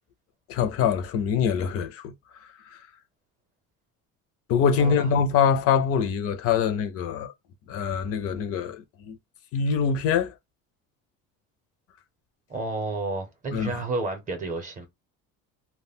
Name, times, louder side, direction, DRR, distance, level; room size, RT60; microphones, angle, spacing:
voice 1, 0.5-2.1 2.4-2.8 4.5-7.3 7.7-9.2 9.5-10.3 13.5-13.8, left 7 dB, 50° left, 0.4 m, -24 dB
voice 2, 4.8-5.1 12.5-14.9, right 3 dB, 25° right, 0.7 m, -31 dB
2.2 x 2.1 x 3.5 m
cardioid pair, 160°, 32 cm